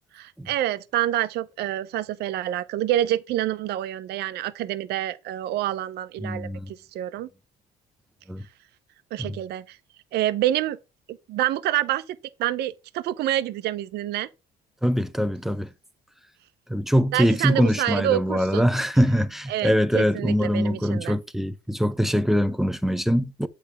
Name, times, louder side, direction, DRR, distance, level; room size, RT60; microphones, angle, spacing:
voice 1, 0.1-7.3 9.1-9.8 10.1-10.8 11.1-14.3 17.1-18.7 19.5-21.2, right 13 dB, 75° right, 0.7 m, -27 dB
voice 2, 6.2-6.7 8.3-8.4 9.2-9.4 14.8-15.7 16.7-23.5, equal, ahead, 0.6 m, -23 dB
8.3 x 3.3 x 5.8 m
cardioid pair, 110°, 17 cm